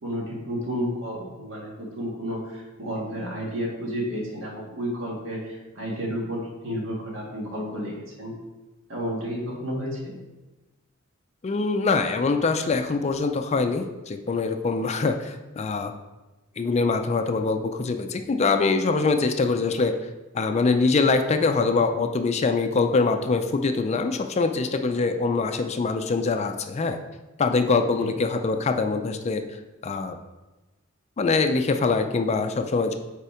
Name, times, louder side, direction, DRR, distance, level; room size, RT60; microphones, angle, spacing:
voice 1, 0.0-8.3 8.9-10.1 28.0-28.1, equal, 70° right, -3 dB, 1.8 m, -31 dB
voice 2, 11.4-15.9 16.6-20.0 20.3-27.0 27.4-29.4 29.8-30.2 31.2-32.9, left 4 dB, 30° left, 7 dB, 0.4 m, -23 dB
5.5 x 4.2 x 4.9 m, 1.1 s
head